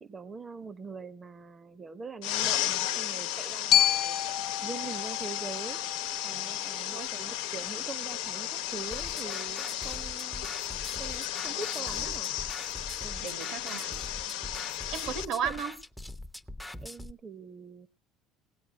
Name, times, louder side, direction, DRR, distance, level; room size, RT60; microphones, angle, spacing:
voice 1, 0.0-4.2 4.6-5.8 6.2-10.5 11.0-12.3 13.0-13.3 15.4-15.5 16.8-17.9, right 5 dB, 25° right, 0.9 m, -43 dB
sound 1, 2.2-15.2, left 12 dB, 85° left, 1.0 m, -34 dB
Glockenspiel, 3.7-7.8, left 11 dB, 60° left, 0.9 m, -30 dB
voice 2, 6.7-7.1 12.0-12.1 13.2-14.0 14.3-14.6 14.9-15.7, right 7 dB, 65° right, 1.5 m, -35 dB
sound 2, 8.9-17.1, left 1 dB, 5° left, 0.8 m, -43 dB
17.5 x 8.2 x 6.0 m
supercardioid pair, 95°, 0 cm